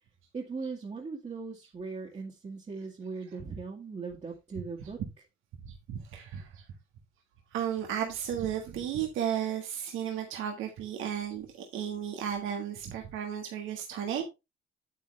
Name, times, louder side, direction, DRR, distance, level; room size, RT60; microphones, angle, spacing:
voice 1, 0.3-5.0, right 4 dB, 35° right, 1.8 m, -39 dB
voice 2, 5.6-6.6 7.5-14.2, right 9 dB, 90° right, 1.6 m, -34 dB
8.5 x 8.3 x 3.3 m
cardioid pair, 90°, 20 cm